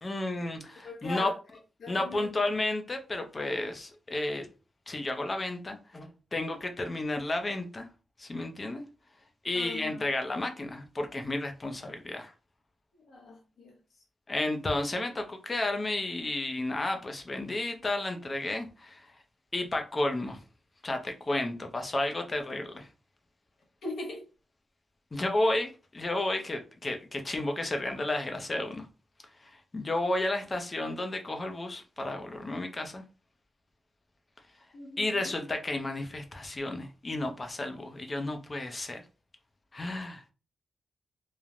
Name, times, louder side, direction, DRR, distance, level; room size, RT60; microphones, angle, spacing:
voice 1, 0.0-1.3 1.9-4.5 4.9-7.9 8.2-8.8 9.4-12.3 14.3-19.1 19.5-20.4 20.8-22.9 25.1-28.9 29.4-33.0 35.0-39.0 39.7-40.3, left 2 dB, 30° left, 0.5 m, -32 dB
voice 2, 0.8-1.3 1.8-2.3 9.5-10.0 13.1-13.7 23.8-24.3 34.7-35.3, left 2 dB, 75° left, 1.0 m, -40 dB
3.1 x 2.1 x 2.4 m
wide cardioid pair, 125°, 0 cm